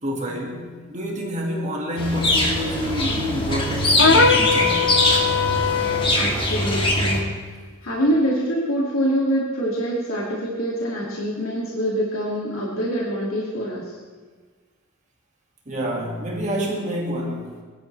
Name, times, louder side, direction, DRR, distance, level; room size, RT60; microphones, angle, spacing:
voice 1, 0.0-5.0 15.7-17.6, equal, 35° right, -1 dB, 2.2 m, -28 dB
sound 1, 2.0-7.2, left 1 dB, 25° left, 1.9 m, -22 dB
sound 2, 4.0-6.2, left 5 dB, 55° left, 0.8 m, -20 dB
voice 2, 6.1-7.3 7.8-13.9, equal, 90° left, -5 dB, 2.6 m, -25 dB
21.0 x 12.5 x 3.4 m, 1.5 s
head